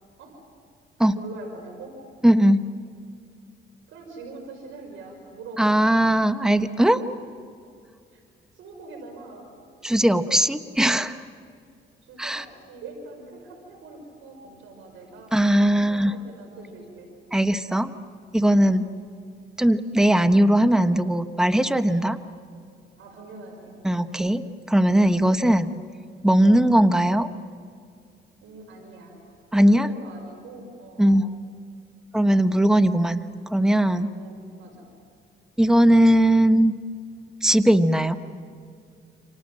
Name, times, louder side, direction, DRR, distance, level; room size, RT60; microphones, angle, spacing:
voice 1, 1.1-1.9 3.9-5.9 8.1-8.2 8.5-9.5 12.0-17.1 18.6-18.9 23.0-23.7 25.2-25.4 26.5-26.7 28.4-29.2 29.6-31.3 34.1-34.9, right 3 dB, 85° right, 2 dB, 5.9 m, -43 dB
voice 2, 2.2-2.6 5.6-7.0 9.8-11.2 12.2-12.4 15.3-16.1 17.3-17.9 18.3-18.8 19.6-22.2 23.8-25.7 26.2-27.3 29.5-29.9 31.0-31.3 32.1-34.1 35.6-36.7 37.4-38.2, right 1 dB, 5° right, 10 dB, 1.1 m, -19 dB
29.0 x 26.0 x 7.6 m, 2.3 s
cardioid pair, 90°, 20 cm